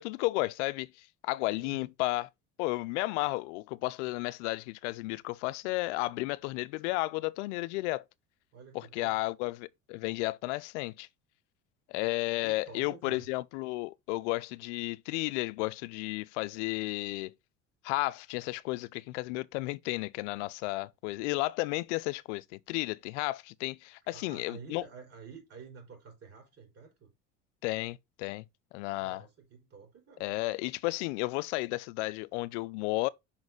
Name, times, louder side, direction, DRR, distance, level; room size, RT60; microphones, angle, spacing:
voice 1, 0.0-2.3 2.6-8.0 8.7-11.1 11.9-17.3 17.8-24.8 27.6-28.4 28.7-29.2 30.2-33.1, left 21 dB, 80° left, 0.5 m, -33 dB
voice 2, 1.6-1.9 8.5-9.2 12.4-13.3 24.1-27.1 29.0-30.3, right 5 dB, 45° right, 4.0 m, -50 dB
5.8 x 4.1 x 4.5 m
supercardioid pair, 85°, 35 cm